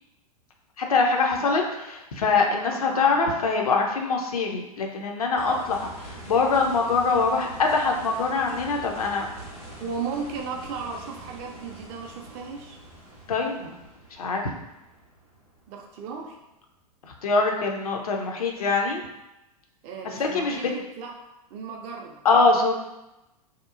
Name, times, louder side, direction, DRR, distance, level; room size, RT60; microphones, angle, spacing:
voice 1, 0.8-1.6 2.1-5.9 6.3-9.3 13.3-13.7 14.2-14.4 17.0-19.0 20.0-20.7 22.2-22.7, left 4 dB, 70° left, 2 dB, 0.5 m, -23 dB
voice 2, 2.5-3.1 5.4-5.6 9.8-12.8 15.7-16.4 19.8-21.2 21.5-22.2, right 5 dB, 30° right, 1 dB, 0.4 m, -35 dB
sound 1, 5.4-16.3 18.5-18.6, right 1 dB, 90° left, 1.2 m, -44 dB
2.8 x 2.0 x 2.4 m, 0.95 s
figure-of-eight pair, 95°, 20 cm